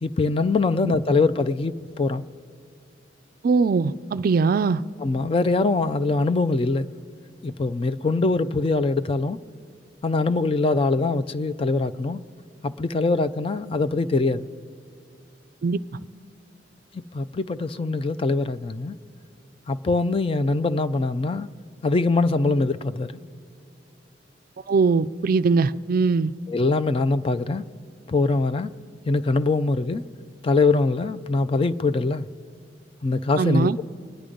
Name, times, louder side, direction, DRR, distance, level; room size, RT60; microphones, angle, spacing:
voice 1, 0.0-2.3 5.0-6.9 7.4-9.4 10.0-12.2 12.6-14.5 16.9-19.0 19.7-21.5 21.8-23.2 26.5-27.6 28.1-28.7 29.1-30.0 30.4-32.3 33.0-33.8, left 3 dB, 30° left, 0.4 m, -23 dB
voice 2, 3.4-4.8 15.6-15.8 24.7-26.3 33.3-33.8, right 4 dB, 55° right, 0.4 m, -21 dB
25.0 x 9.9 x 5.1 m
head